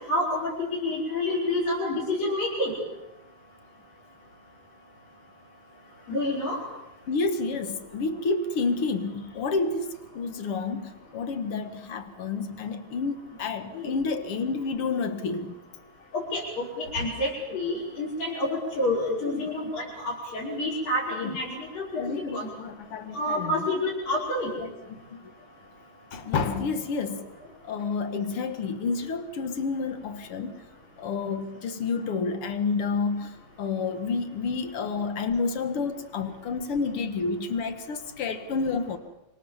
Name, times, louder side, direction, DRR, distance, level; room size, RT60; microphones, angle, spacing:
voice 1, 0.1-2.7 6.1-6.6 13.7-13.9 16.1-22.1 22.3-22.5 23.1-24.6, left 1 dB, 45° left, 7.2 m, -28 dB
voice 2, 7.1-9.9 10.1-15.5 17.0-17.1 19.2-19.4 21.1-21.4 22.0-23.7 24.6-25.2 26.1-27.3 27.6-30.6 31.0-39.0, left 4 dB, 65° left, 1.4 m, -30 dB
28.5 x 26.5 x 7.4 m
omnidirectional pair, 5.5 m